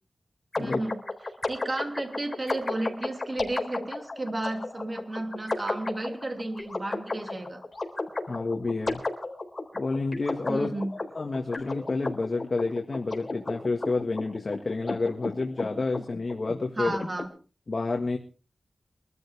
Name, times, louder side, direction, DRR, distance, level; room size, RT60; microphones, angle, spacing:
sound 1, 0.5-17.2, left 2 dB, 35° left, 4.0 m, -34 dB
voice 1, 0.6-1.0 1.5-7.6 10.5-10.9 16.8-17.3, right 2 dB, 35° right, 5 dB, 3.1 m, -33 dB
voice 2, 8.3-9.0 9.7-10.7 11.1-17.0 17.7-18.2, left 3 dB, 50° left, 2 dB, 1.8 m, -29 dB
24.0 x 13.5 x 3.5 m, 0.36 s
wide cardioid pair, 70°, 0 cm